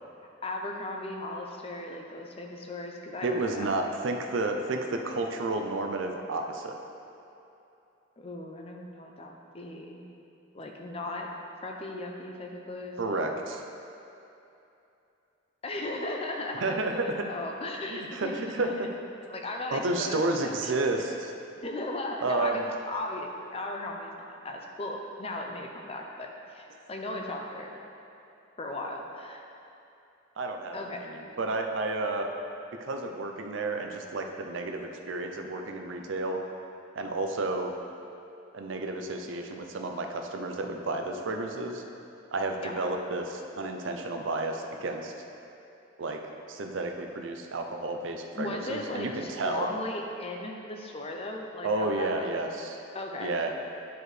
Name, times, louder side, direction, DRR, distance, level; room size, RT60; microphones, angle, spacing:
voice 1, 0.4-3.7 8.2-10.0 10.5-11.3 11.6-13.2 15.6-18.8 19.3-20.7 21.6-27.8 28.6-29.4 30.7-31.2 42.6-42.7 48.3-52.4 52.9-53.6, left 2 dB, 30° left, 1 dB, 0.6 m, -37 dB
voice 2, 3.2-6.8 13.0-13.6 16.6-17.1 17.9-18.9 19.7-21.3 22.2-22.6 30.4-30.7 31.1-32.3 32.8-36.4 37.0-37.7 38.5-41.8 42.3-45.1 46.0-46.2 46.5-49.7 51.6-52.8 53.2-53.5, right 2 dB, 70° right, 4 dB, 0.6 m, -31 dB
10.0 x 4.7 x 3.3 m, 2.8 s
head